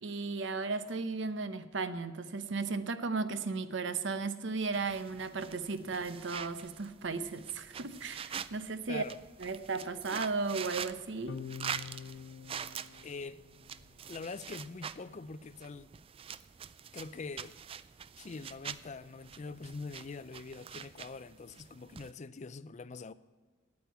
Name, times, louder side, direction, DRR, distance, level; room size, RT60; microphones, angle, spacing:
voice 1, 0.0-9.0 9.4-11.4, right 4 dB, 65° right, 0.7 m, -35 dB
sound 1, 4.7-22.1, right 7 dB, 30° right, 0.3 m, -45 dB
voice 2, 8.9-9.2 13.0-13.4 14.1-15.9 16.9-17.6 18.2-23.1, left 4 dB, 35° left, 0.4 m, -44 dB
sound 2, 11.3-13.9, left 6 dB, 70° left, 0.8 m, -46 dB
8.9 x 8.6 x 9.2 m
head